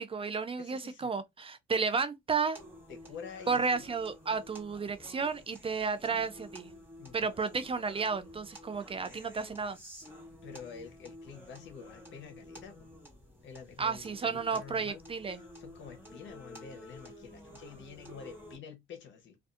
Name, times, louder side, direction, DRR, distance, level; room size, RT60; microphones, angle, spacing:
voice 1, 0.0-2.6 3.5-6.7 7.1-9.8 13.8-15.4, right 5 dB, 30° right, 0.4 m, -32 dB
voice 2, 0.6-1.1 2.9-3.9 7.0-7.3 10.4-12.9 13.4-15.0 15.5-19.4, left 6 dB, 70° left, 0.8 m, -48 dB
sound 1, 2.6-18.6, equal, 10° right, 1.2 m, -51 dB
2.5 x 2.3 x 2.4 m
cardioid pair, 90°, 20 cm